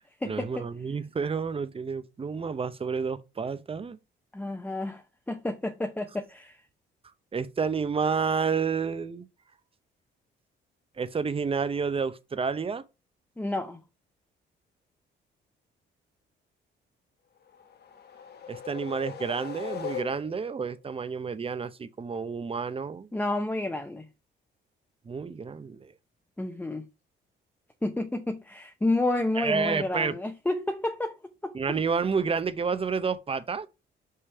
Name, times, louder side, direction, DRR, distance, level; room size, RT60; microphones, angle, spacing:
voice 1, 0.2-4.0 7.3-9.3 11.0-12.8 18.5-23.1 25.1-25.9 29.4-30.1 31.5-33.7, right 5 dB, 30° right, 0.7 m, -30 dB
voice 2, 4.3-6.6 13.4-13.8 23.1-24.1 26.4-26.8 27.8-31.2 31.4-31.6, left 2 dB, 10° left, 0.8 m, -30 dB
sound 1, 17.5-20.6, left 8 dB, 55° left, 1.1 m, -39 dB
5.5 x 3.2 x 5.5 m
cardioid pair, 90°, 20 cm